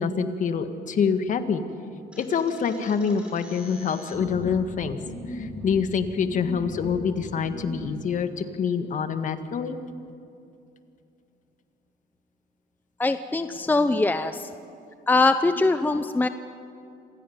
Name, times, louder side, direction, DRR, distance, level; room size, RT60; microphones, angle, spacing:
voice 1, 0.0-1.6 2.2-5.0 5.3-9.8, left 6 dB, 50° left, 8 dB, 1.8 m, -26 dB
sound 1, 2.1-7.9, equal, 5° right, 5.7 m, -39 dB
voice 2, 13.0-14.5 15.1-16.3, left 3 dB, 10° left, 10 dB, 0.7 m, -22 dB
27.0 x 16.5 x 9.4 m, 2.6 s
cardioid pair, 110°, 17 cm